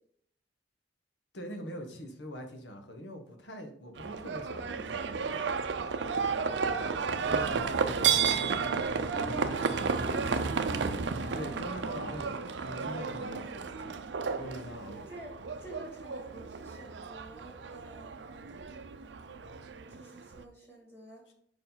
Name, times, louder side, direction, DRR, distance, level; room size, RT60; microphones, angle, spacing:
voice 1, 1.3-5.5 7.2-10.9 11.3-14.0 14.4-15.1 21.3-21.4, equal, 80° left, 4 dB, 1.3 m, -43 dB
Livestock farm animals working animals, 4.0-20.4, right 5 dB, 80° right, 0.5 m, -32 dB
Wind instrument woodwind instrument, 7.2-12.9, right 2 dB, 30° right, 1.5 m, -44 dB
voice 2, 15.6-18.2 19.9-21.2, right 1 dB, 15° left, -3 dB, 2.3 m, -50 dB
5.0 x 4.6 x 5.7 m, 0.64 s
head